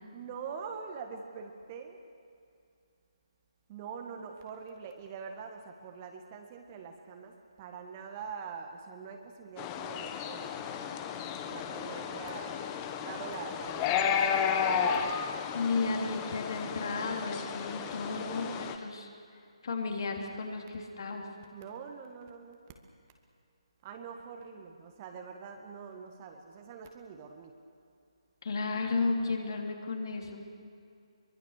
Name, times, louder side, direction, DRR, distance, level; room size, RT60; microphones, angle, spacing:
voice 1, 0.1-2.0 3.7-10.9 11.5-12.6 13.0-15.4 18.0-18.8 21.5-22.6 23.8-27.5, right 6 dB, 25° right, 4 dB, 1.8 m, -44 dB
sound 1, 9.6-18.8, left 7 dB, 20° left, 1.2 m, -33 dB
voice 2, 15.5-21.3 28.4-30.5, left 3 dB, 45° left, 2 dB, 3.2 m, -34 dB
24.0 x 23.5 x 6.7 m, 2.4 s
figure-of-eight pair, 145°, 3 cm